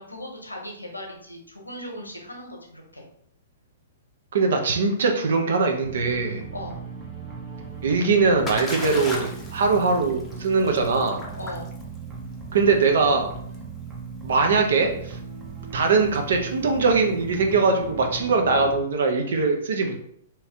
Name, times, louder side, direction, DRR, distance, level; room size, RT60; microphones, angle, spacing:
voice 1, 0.0-3.0 6.5-6.8 11.4-11.7, left 1 dB, 85° left, 0 dB, 1.0 m, -38 dB
voice 2, 4.3-6.4 7.8-11.2 12.5-13.3 14.2-15.2 15.7-20.0, right 4 dB, 55° right, 3 dB, 0.7 m, -21 dB
sound 1, 5.8-18.8, right 5 dB, 20° right, 0.7 m, -38 dB
Splash splatter, 7.8-17.6, left 2 dB, 15° left, 0.7 m, -38 dB
3.1 x 3.0 x 3.6 m, 0.67 s
figure-of-eight pair, 110°, 0 cm